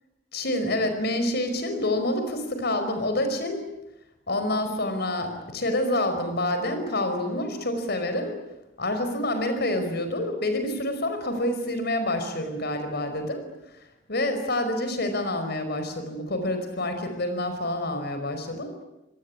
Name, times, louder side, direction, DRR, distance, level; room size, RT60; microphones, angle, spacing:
voice 1, 0.3-3.7 4.3-8.4 8.8-13.4 14.1-18.8, left 1 dB, 55° left, 7 dB, 5.2 m, -27 dB
27.0 x 18.5 x 9.9 m, 0.91 s
head